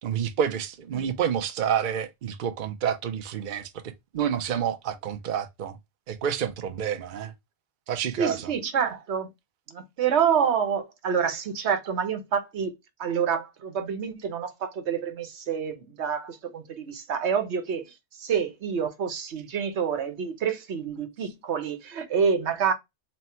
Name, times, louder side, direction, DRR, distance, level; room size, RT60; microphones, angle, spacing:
voice 1, 0.0-3.7 4.1-5.8 6.1-7.3 7.9-8.5, right 8 dB, 55° right, 0.7 m, -28 dB
voice 2, 8.2-9.3 9.7-12.7 13.0-17.8 18.2-22.7, right 7 dB, 80° right, 1.1 m, -27 dB
4.2 x 2.1 x 4.2 m
omnidirectional pair, 1.1 m